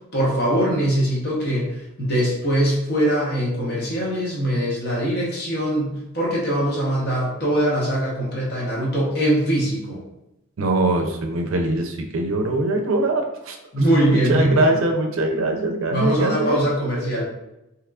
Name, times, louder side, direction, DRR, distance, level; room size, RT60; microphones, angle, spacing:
voice 1, 0.1-10.0 13.7-14.6 15.9-17.3, right 1 dB, 50° left, -4 dB, 1.0 m, -22 dB
voice 2, 10.6-13.6 14.1-16.6, right 2 dB, 65° right, 3 dB, 0.5 m, -22 dB
3.5 x 2.9 x 2.4 m, 0.90 s
head